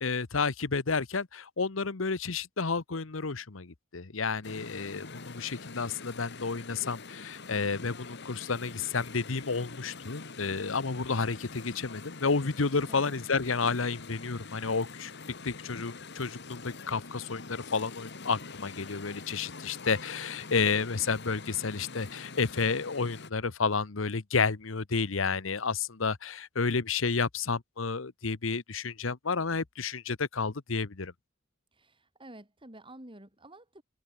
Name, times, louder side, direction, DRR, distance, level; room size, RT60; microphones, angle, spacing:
voice 1, 0.0-15.1 15.4-31.1, left 4 dB, 75° left, 1.1 m, -31 dB
sound 1, 4.4-23.3, left 4 dB, 60° left, 2.3 m, -45 dB
voice 2, 12.9-13.2 31.7-33.8, right 1 dB, 25° right, 5.7 m, -50 dB
open air
head